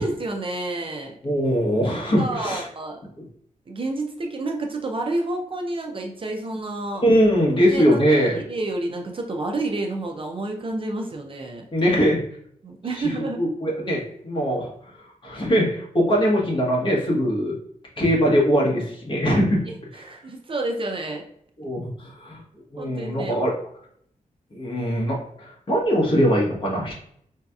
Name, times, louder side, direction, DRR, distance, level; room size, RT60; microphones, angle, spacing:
voice 1, 0.0-1.1 2.2-3.0 3.7-7.0 7.7-11.6 12.6-13.4 19.9-21.2 22.8-23.5, right 2 dB, 40° right, 2 dB, 0.5 m, -29 dB
voice 2, 1.2-2.6 7.0-8.4 11.7-12.2 13.0-13.1 13.4-14.7 15.2-17.5 18.0-19.6 21.6-22.4 22.7-23.5 24.5-26.9, equal, 35° left, -2 dB, 1.1 m, -21 dB
4.8 x 2.7 x 2.3 m, 0.67 s
wide cardioid pair, 160°, 14 cm